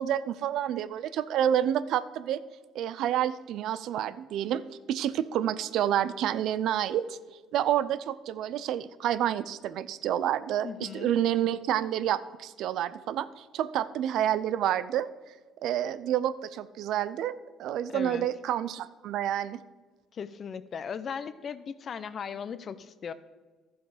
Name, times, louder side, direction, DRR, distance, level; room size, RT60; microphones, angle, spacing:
voice 1, 0.0-2.4 2.7-4.6 4.9-7.2 7.5-15.1 15.6-17.3 17.6-19.6, right 11 dB, 70° right, 14 dB, 0.5 m, -29 dB
voice 2, 10.6-11.1 17.9-18.3 20.1-23.1, left 7 dB, 50° left, 14 dB, 0.6 m, -37 dB
12.0 x 7.1 x 5.0 m, 1.3 s
supercardioid pair, 75°, 0 cm